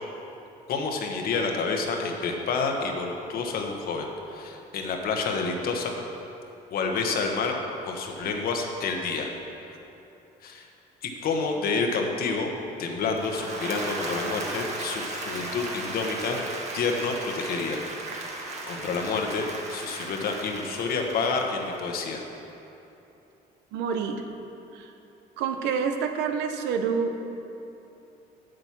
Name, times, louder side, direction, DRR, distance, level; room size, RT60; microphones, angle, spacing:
voice 1, 0.7-5.9 6.7-7.5 7.9-9.3 10.4-10.7 11.0-12.5 12.8-16.4 16.7-17.8 18.7-22.2, left 4 dB, 60° left, 2 dB, 1.2 m, -29 dB
Applause / Crowd, 13.0-22.1, right 2 dB, 40° right, 1.4 m, -36 dB
voice 2, 23.7-24.2 24.7-24.9 25.4-27.3, right 6 dB, 90° right, 6 dB, 0.8 m, -28 dB
7.8 x 7.7 x 5.9 m, 2.9 s
cardioid pair, 110°, 17 cm